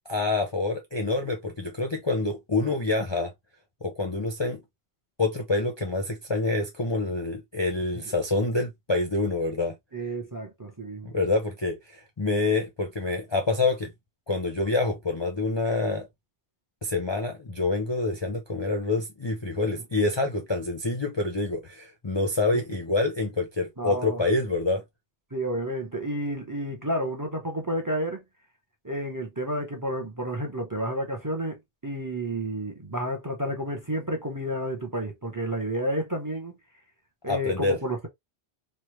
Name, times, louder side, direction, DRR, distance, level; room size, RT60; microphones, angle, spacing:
voice 1, 0.1-3.3 3.8-4.6 5.2-9.7 11.0-13.9 14.3-16.1 16.8-24.8 37.3-37.8, left 2 dB, 35° left, 0.5 m, -27 dB
voice 2, 9.9-11.1 22.5-22.6 23.8-24.2 25.3-28.2 28.8-36.5 37.2-38.1, right 1 dB, 20° right, 0.6 m, -31 dB
3.2 x 2.2 x 3.0 m
omnidirectional pair, 1.1 m